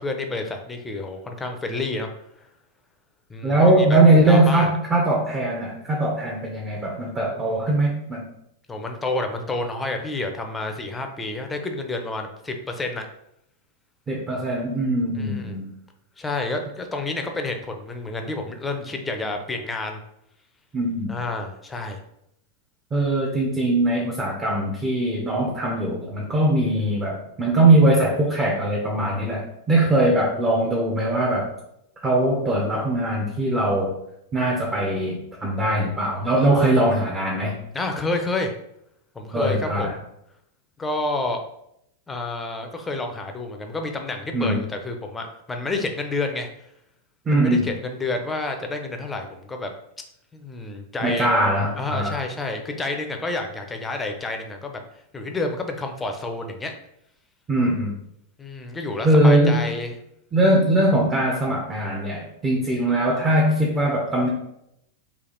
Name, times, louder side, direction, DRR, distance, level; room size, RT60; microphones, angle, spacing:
voice 1, 0.0-2.1 2.4-2.5 3.3-4.0 4.3-4.7 7.2-7.7 8.7-13.1 15.2-15.6 16.2-20.0 21.1-22.0 30.0-30.1 37.7-38.5 39.1-40.0 40.8-41.4 42.1-46.5 47.3-49.7 50.3-51.3 51.8-54.8 55.1-56.7 58.4-59.9, left 2 dB, 15° left, 4 dB, 0.6 m, -29 dB
voice 2, 3.4-8.3 14.1-15.7 20.7-21.1 22.9-31.5 32.0-33.9 34.3-37.6 39.3-39.9 44.3-44.6 47.3-47.7 51.0-52.2 57.5-57.9 59.0-59.7 60.3-64.3, right 1 dB, 20° right, -1 dB, 0.8 m, -21 dB
3.3 x 2.4 x 3.8 m, 0.78 s
hypercardioid pair, 120°, 0 cm